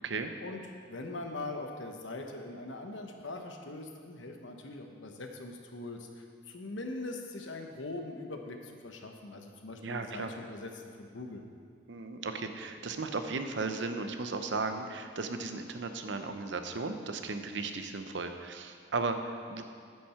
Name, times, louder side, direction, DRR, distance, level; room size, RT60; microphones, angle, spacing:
voice 1, 0.9-10.7 11.0-11.4, left 2 dB, 70° left, 3 dB, 1.0 m, -41 dB
voice 2, 9.8-10.3 11.9-19.6, right 3 dB, 65° right, 7 dB, 0.7 m, -35 dB
9.4 x 7.5 x 5.7 m, 2.2 s
head